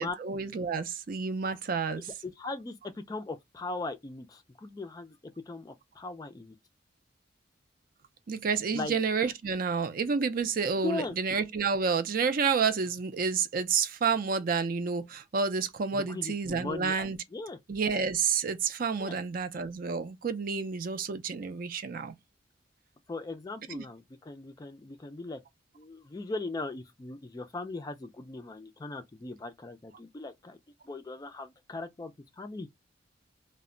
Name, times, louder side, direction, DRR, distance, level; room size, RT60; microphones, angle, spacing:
voice 1, 0.0-2.0 8.3-17.2 17.7-22.1 23.7-23.8, right 5 dB, 50° right, 0.4 m, -29 dB
voice 2, 1.9-5.2 5.5-6.5 8.7-9.0 10.8-11.1 15.9-17.6 19.0-19.2 23.1-25.4 25.7-30.6 30.9-32.7, left 3 dB, 20° left, 0.3 m, -39 dB
2.1 x 2.1 x 3.7 m
head